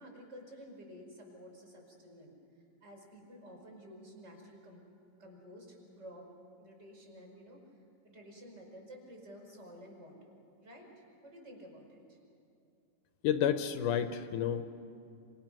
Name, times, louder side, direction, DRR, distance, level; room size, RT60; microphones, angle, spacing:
voice 1, 0.0-2.3 2.8-4.8 5.2-6.3 6.6-7.6 8.0-10.3 10.6-12.2, equal, 30° right, 0 dB, 5.7 m, -52 dB
voice 2, 13.2-14.6, left 9 dB, 75° left, 9 dB, 2.2 m, -30 dB
27.0 x 27.0 x 6.1 m, 2.6 s
omnidirectional pair, 3.9 m